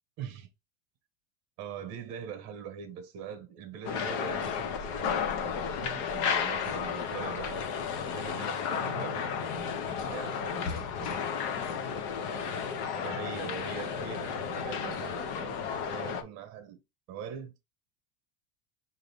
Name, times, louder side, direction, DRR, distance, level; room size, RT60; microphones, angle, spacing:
voice 1, 0.2-0.5 1.6-7.6 8.1-11.3 12.2-15.6 15.9-16.8 17.1-17.5, right 7 dB, 35° right, 1.1 m, -43 dB
sound 1, 3.8-16.2, left 7 dB, 45° left, 0.7 m, -33 dB
5.0 x 2.7 x 3.4 m
supercardioid pair, 170°, 46 cm